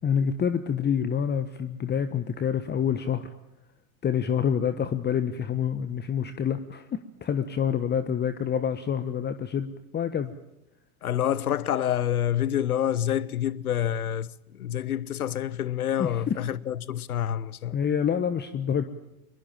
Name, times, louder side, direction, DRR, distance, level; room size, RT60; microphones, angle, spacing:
voice 1, 0.0-3.3 4.0-10.3 16.0-16.4 17.7-18.8, left 8 dB, 25° left, 1.3 m, -27 dB
voice 2, 11.0-17.8, left 10 dB, 80° left, 1.0 m, -27 dB
23.0 x 22.5 x 9.0 m
hypercardioid pair, 90°, 43 cm